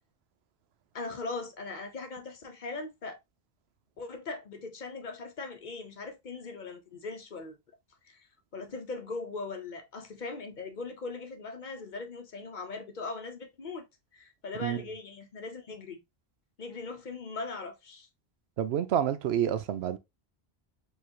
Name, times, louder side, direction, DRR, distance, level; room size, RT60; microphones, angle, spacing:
voice 1, 0.9-3.2 4.0-7.6 8.0-8.2 8.5-13.9 14.1-16.0 16.6-18.1, left 3 dB, 50° left, 0.9 m, -40 dB
voice 2, 18.6-20.0, right 9 dB, 85° right, 0.9 m, -28 dB
4.7 x 3.1 x 2.7 m
omnidirectional pair, 1.0 m